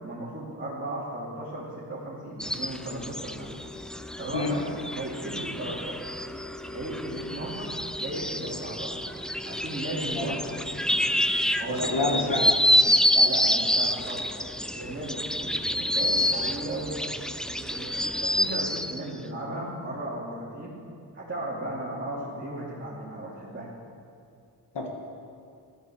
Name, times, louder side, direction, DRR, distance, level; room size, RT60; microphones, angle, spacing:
voice 1, 0.0-3.6 4.2-6.0 6.7-7.7 8.0-9.0 9.4-10.8 11.5-12.4 13.1-14.3 14.7-17.0 17.5-20.7 21.1-23.7, right 1 dB, 30° right, -8 dB, 2.7 m, -35 dB
sound 1, 2.4-19.0, equal, ahead, 0.4 m, -27 dB
voice 2, 11.7-12.5 24.7-24.9, left 3 dB, 85° left, 1 dB, 1.8 m, -28 dB
14.0 x 12.0 x 7.3 m, 2.4 s
wide cardioid pair, 155°, 41 cm